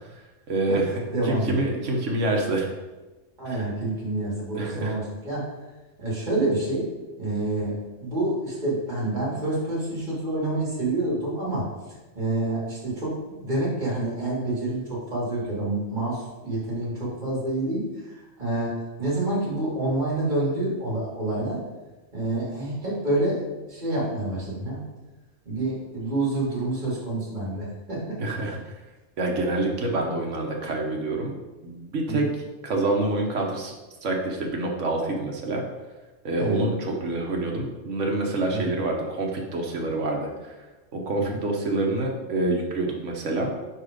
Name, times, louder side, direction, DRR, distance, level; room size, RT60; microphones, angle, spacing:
voice 1, 0.5-2.7 3.5-3.6 4.5-4.9 28.2-28.6 29.2-31.3 31.6-32.3 32.6-33.7 34.0-35.6 36.2-40.5 40.9-43.5, right 2 dB, 70° right, 1 dB, 1.3 m, -27 dB
voice 2, 1.1-2.0 3.4-5.5 6.0-6.9 7.2-11.7 12.1-21.6 22.1-24.8 25.5-28.2 28.5-28.6 32.0-32.3 36.4-36.6 38.5-38.6 41.3-41.4, right 2 dB, 35° right, -7 dB, 2.2 m, -28 dB
5.0 x 4.3 x 5.0 m, 1.2 s
omnidirectional pair, 1.3 m